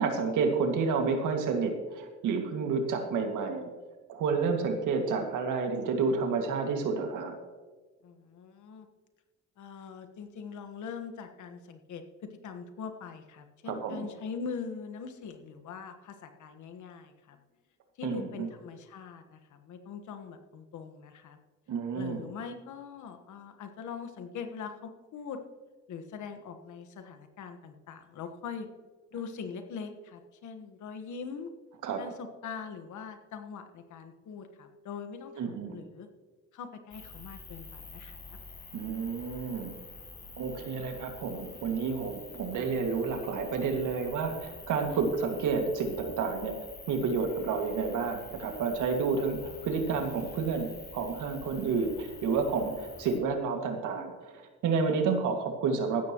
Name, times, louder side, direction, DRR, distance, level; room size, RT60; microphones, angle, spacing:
voice 1, 0.0-3.7 4.1-7.3 13.7-14.1 18.0-18.5 21.7-22.2 31.8-32.0 35.4-35.8 38.7-39.7 40.4-56.1, right 5 dB, 85° right, 4 dB, 2.1 m, -30 dB
voice 2, 8.0-8.9 9.6-12.0 12.4-17.4 18.0-21.4 21.9-25.4 25.9-28.7 29.1-31.5 32.0-36.1 36.5-38.4, left 6 dB, 75° left, 7 dB, 1.5 m, -42 dB
sound 1, 36.9-53.2, left 3 dB, 30° left, 2.5 m, -48 dB
15.5 x 12.5 x 3.1 m, 1.3 s
cardioid pair, 90°, 30 cm